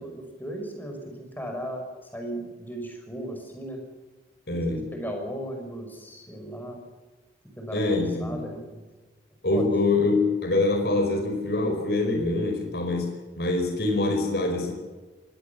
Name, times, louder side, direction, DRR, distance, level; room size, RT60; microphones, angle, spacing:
voice 1, 0.0-3.8 4.6-6.8 7.6-8.9 9.5-9.7, right 1 dB, 10° left, 3 dB, 5.6 m, -37 dB
voice 2, 4.5-4.9 7.7-8.4 9.4-14.7, left 2 dB, 65° left, 3 dB, 4.8 m, -25 dB
23.5 x 18.5 x 7.1 m, 1.3 s
head